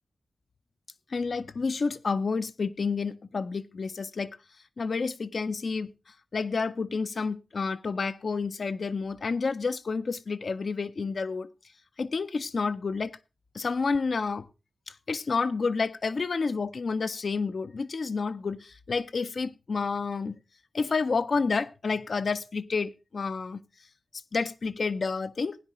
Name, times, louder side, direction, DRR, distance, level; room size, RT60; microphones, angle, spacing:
voice 1, 1.1-4.3 4.8-5.9 6.3-11.5 12.0-13.2 13.5-14.5 14.9-20.4 20.7-23.6 24.3-25.6, left 4 dB, 65° left, 0.6 m, -29 dB
16.5 x 10.0 x 3.0 m
cardioid pair, 50°, 0 cm